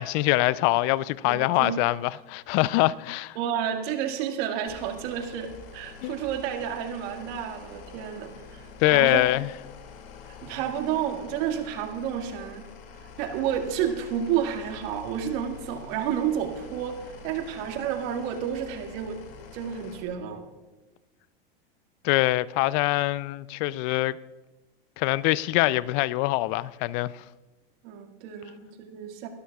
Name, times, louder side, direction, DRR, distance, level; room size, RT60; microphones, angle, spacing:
voice 1, 0.0-3.4 6.0-6.2 8.8-9.5 22.0-24.2 25.0-27.2, left 18 dB, 50° left, 0.5 m, -24 dB
voice 2, 1.2-1.8 3.4-9.3 10.3-12.6 13.2-19.2 19.5-20.4 27.8-29.3, right 9 dB, 55° right, 2.0 m, -30 dB
sound 1, 4.7-20.0, left 5 dB, 65° left, 2.5 m, -46 dB
22.5 x 12.5 x 2.4 m
hypercardioid pair, 110°, 29 cm